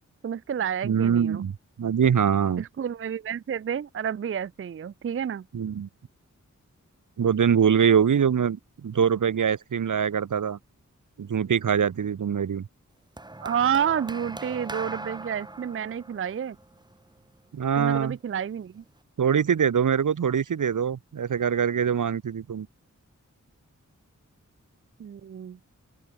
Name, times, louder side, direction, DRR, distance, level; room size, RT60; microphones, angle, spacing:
voice 1, 0.2-1.4 2.6-5.5 13.4-16.6 17.7-18.8 25.0-25.6, right 8 dB, 45° right, 0.4 m, -30 dB
voice 2, 0.8-1.5 1.8-2.6 5.5-5.9 7.2-10.6 11.2-12.7 17.5-18.2 19.2-22.7, right 7 dB, 75° right, 0.8 m, -23 dB
sound 1, 13.2-17.6 18.5-18.8, right 2 dB, 15° right, 0.8 m, -40 dB
open air
wide cardioid pair, 80°, 31 cm